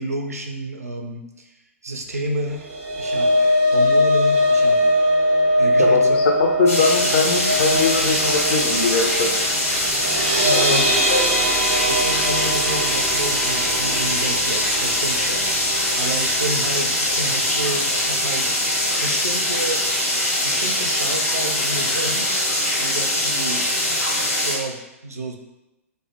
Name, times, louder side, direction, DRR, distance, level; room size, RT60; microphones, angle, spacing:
voice 1, 0.0-1.5 1.8-2.7 3.0-5.1 5.6-6.2 10.4-10.9 11.9-15.5 16.0-18.5 19.0-19.8 20.4-22.3 22.8-23.6 24.2-25.4, right 2 dB, 85° right, 3 dB, 0.4 m, -30 dB
sound 1, 2.5-16.7 17.1-17.3 17.6-17.7, left 1 dB, 25° right, 0.5 m, -22 dB
voice 2, 5.8-9.3 10.5-11.2, left 4 dB, 50° left, 1 dB, 0.5 m, -22 dB
sound 2, 6.7-24.6, left 1 dB, 85° left, 1.0 m, -22 dB
2.1 x 2.1 x 2.8 m, 0.98 s
figure-of-eight pair, 110°, 8 cm